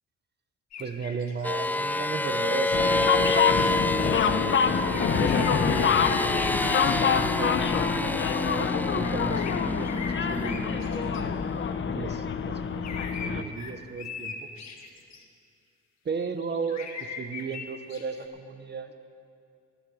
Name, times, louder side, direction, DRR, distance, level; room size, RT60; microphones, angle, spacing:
sound 1, 0.7-1.5 2.5-3.7 4.0-4.3 4.9-7.8 9.0-11.2 12.8-15.2 16.2-18.2, left 5 dB, 65° left, 1.6 m, -40 dB
voice 1, 0.8-11.4 11.9-14.3 16.0-18.9, right 5 dB, 35° right, 8 dB, 0.9 m, -36 dB
sound 2, 1.4-12.3, left 2 dB, 5° left, 0.3 m, -29 dB
sound 3, 2.7-13.4, left 6 dB, 40° left, 0.8 m, -26 dB
14.0 x 9.7 x 7.0 m, 2.5 s
cardioid pair, 90°, 30 cm